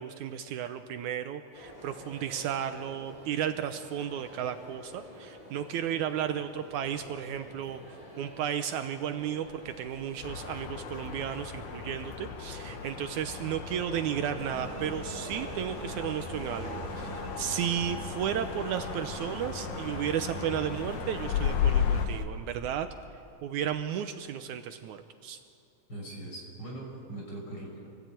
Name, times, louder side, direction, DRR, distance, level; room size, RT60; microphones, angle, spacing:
voice 1, 0.0-22.9 23.4-25.4, right 9 dB, 75° right, 8 dB, 2.1 m, -34 dB
sound 1, 1.5-21.5, equal, 10° left, 5.6 m, -48 dB
sound 2, 10.2-22.1, left 8 dB, 75° left, 2.6 m, -35 dB
sound 3, 14.4-22.2, right 7 dB, 60° right, 1.9 m, -44 dB
voice 2, 25.9-27.9, right 2 dB, 30° left, -1 dB, 6.2 m, -41 dB
26.5 x 17.0 x 8.9 m, 2.5 s
omnidirectional pair, 3.7 m